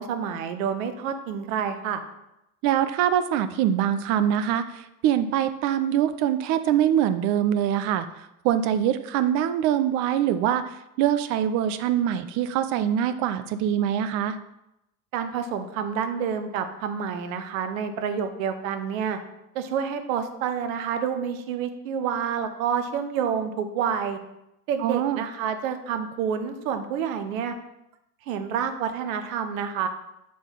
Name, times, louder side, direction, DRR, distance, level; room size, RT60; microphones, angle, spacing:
voice 1, 0.0-2.0 15.1-19.2 19.5-24.2 24.7-27.5 28.3-29.9, right 7 dB, 60° right, 8 dB, 0.9 m, -28 dB
voice 2, 2.6-14.4 24.8-25.2, right 10 dB, 40° right, 11 dB, 0.5 m, -24 dB
6.8 x 3.6 x 5.2 m, 0.87 s
figure-of-eight pair, 70°, 46 cm